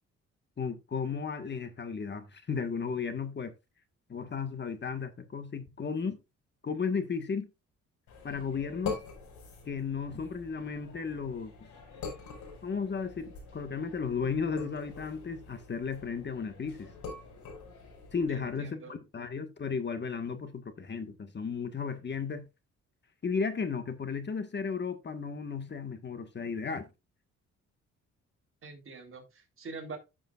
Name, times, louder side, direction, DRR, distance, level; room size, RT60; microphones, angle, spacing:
voice 1, 0.6-3.5 4.1-6.2 6.6-7.5 8.2-9.0 9.7-11.5 12.6-16.9 18.1-22.4 23.2-26.9, left 5 dB, 35° left, 1.6 m, -34 dB
sound 1, 8.1-18.5, left 5 dB, 80° left, 5.3 m, -45 dB
voice 2, 18.3-19.0 28.6-30.0, right 4 dB, 45° right, 3.7 m, -45 dB
12.5 x 7.2 x 2.5 m
cardioid pair, 90°, 30 cm